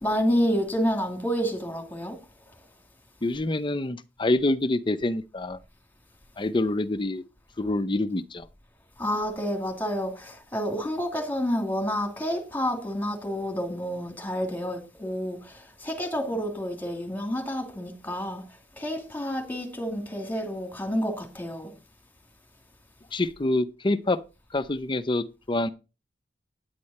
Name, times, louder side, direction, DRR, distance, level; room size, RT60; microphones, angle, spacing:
voice 1, 0.0-2.2 9.0-18.4 18.8-21.7, equal, 10° left, 2.5 m, -29 dB
voice 2, 3.2-5.6 6.4-7.2 7.6-8.5 23.1-24.2 24.5-25.7, left 2 dB, 25° left, 0.6 m, -26 dB
9.5 x 8.4 x 4.2 m
head